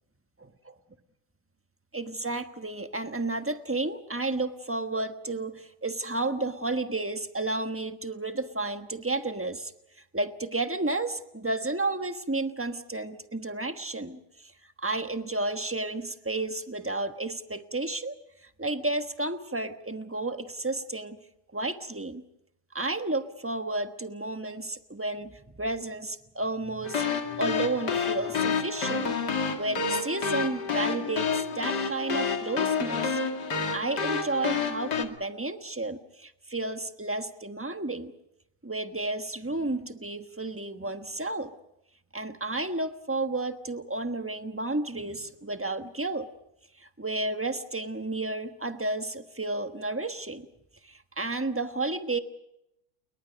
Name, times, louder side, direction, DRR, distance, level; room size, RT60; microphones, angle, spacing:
voice 1, 1.9-9.7 10.1-14.5 14.8-18.1 18.4-21.2 21.5-22.2 22.7-29.2 29.5-33.2 33.7-38.1 38.6-41.5 42.1-46.3 46.8-50.5 50.8-52.2, right 2 dB, 10° right, 8 dB, 0.9 m, -32 dB
sound 1, 26.8-35.0, left 5 dB, 55° left, 2.8 m, -29 dB
30.0 x 22.5 x 5.2 m, 0.81 s
omnidirectional pair, 2.2 m